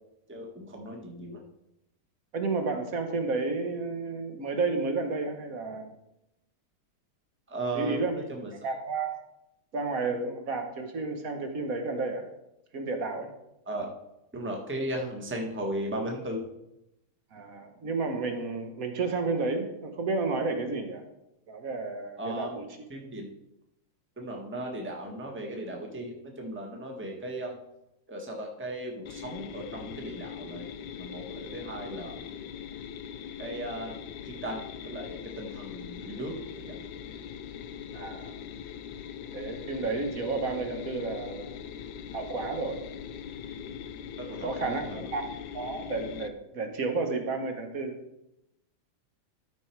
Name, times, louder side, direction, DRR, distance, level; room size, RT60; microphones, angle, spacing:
voice 1, 0.3-1.4 7.5-8.0 8.3-8.5 13.7-13.9 14.3-16.4 22.2-22.6 22.9-23.3 24.2-27.5 28.1-30.7 30.9-32.2 32.5-32.6 33.4-34.0 34.2-36.8 44.2-45.1, right 1 dB, 5° right, 1 dB, 1.2 m, -36 dB
voice 2, 2.3-5.9 7.7-8.2 8.6-9.2 9.7-12.2 12.7-13.3 17.3-21.0 21.5-22.6 37.9-38.4 39.3-41.5 42.1-42.8 44.4-48.0, right 3 dB, 50° right, 6 dB, 1.3 m, -31 dB
sound 1, 29.1-46.3, left 8 dB, 70° left, 1.3 m, -41 dB
13.0 x 5.3 x 4.6 m, 0.85 s
omnidirectional pair, 2.3 m